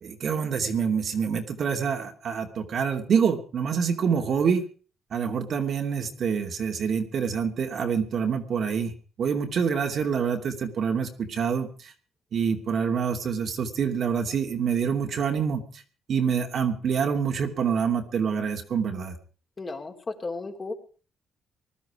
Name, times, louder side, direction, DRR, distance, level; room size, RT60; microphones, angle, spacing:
voice 1, 0.0-4.6 5.1-8.9 9.2-11.9 12.3-15.6 16.1-19.2, right 6 dB, 60° right, 3 dB, 2.8 m, -26 dB
voice 2, 19.6-20.7, left 3 dB, 30° left, 3 dB, 3.5 m, -34 dB
20.0 x 12.5 x 4.9 m, 0.39 s
cardioid pair, 90°, 0 cm